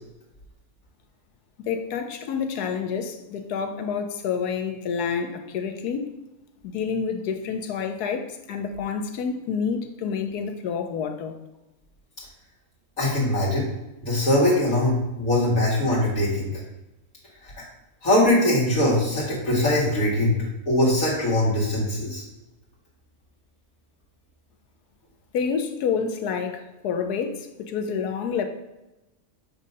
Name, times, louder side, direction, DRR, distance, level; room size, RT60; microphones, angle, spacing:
voice 1, 1.6-6.1 6.6-11.4 25.3-28.4, left 6 dB, 90° left, 6 dB, 1.2 m, -28 dB
voice 2, 13.0-13.7 14.0-16.6 17.4-17.5 18.0-20.3 20.7-22.2, left 1 dB, 60° left, -6 dB, 2.1 m, -21 dB
7.3 x 2.7 x 5.2 m, 0.98 s
omnidirectional pair, 1.6 m